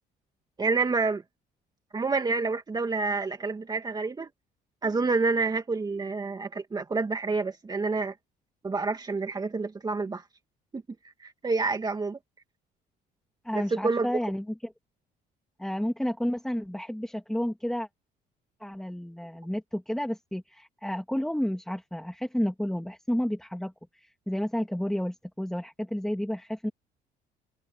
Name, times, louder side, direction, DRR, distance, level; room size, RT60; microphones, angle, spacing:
voice 1, 0.6-1.2 1.9-4.3 4.8-8.1 8.6-10.2 10.7-10.8 11.2-12.2 13.5-14.1, right 4 dB, 25° right, 2.1 m, -28 dB
voice 2, 13.4-14.7 15.6-17.9 18.6-26.7, equal, 5° left, 2.7 m, -31 dB
cardioid pair, 110°, 17 cm